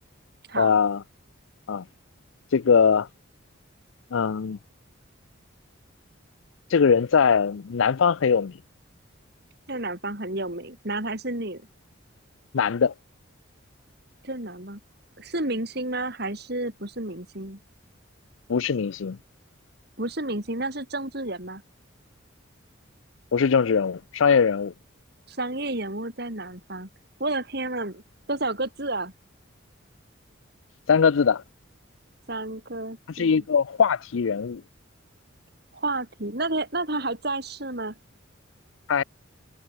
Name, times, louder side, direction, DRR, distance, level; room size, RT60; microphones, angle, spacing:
voice 1, 0.6-1.0 1.7-1.8 2.5-3.1 4.1-4.6 6.7-8.6 12.5-12.9 18.5-19.2 23.3-24.7 30.9-31.4 33.1-34.6 38.9-39.0, left 6 dB, 75° left, 0.5 m, -21 dB
voice 2, 9.7-11.7 14.2-14.8 15.2-17.6 20.0-21.6 25.3-26.9 27.2-28.0 28.3-29.1 32.3-33.4 35.7-37.9, right 2 dB, 50° right, 4.6 m, -31 dB
head